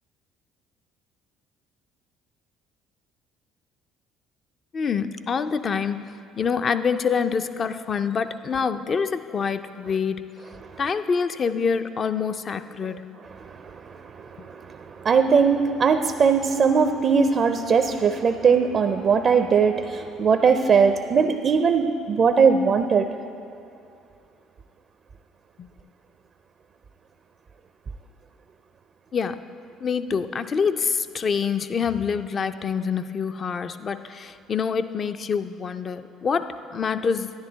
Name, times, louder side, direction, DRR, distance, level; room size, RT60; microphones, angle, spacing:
voice 1, 4.7-6.0 6.4-10.3 10.8-13.1 25.6-25.7 29.1-29.4 29.8-37.3, left 6 dB, 45° left, 10 dB, 0.4 m, -26 dB
voice 2, 14.5-23.1, right 5 dB, 50° right, 8 dB, 0.4 m, -20 dB
10.5 x 10.5 x 3.9 m, 2.6 s
supercardioid pair, 75°, 0 cm